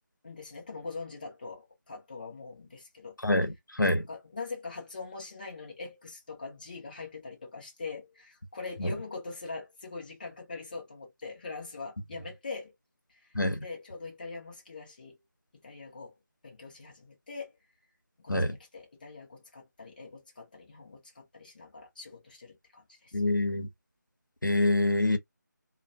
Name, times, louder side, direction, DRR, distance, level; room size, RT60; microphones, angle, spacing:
voice 1, 0.2-3.2 4.1-12.7 13.1-13.3 13.6-15.2 15.6-16.1 16.4-17.5 18.2-23.2, left 4 dB, 30° left, 0.6 m, -42 dB
voice 2, 3.2-4.1 8.8-8.9 13.3-13.6 18.3-18.6 23.1-23.7 24.4-25.2, left 2 dB, 90° left, 0.8 m, -26 dB
2.3 x 2.2 x 2.5 m
figure-of-eight pair, 160°, 10 cm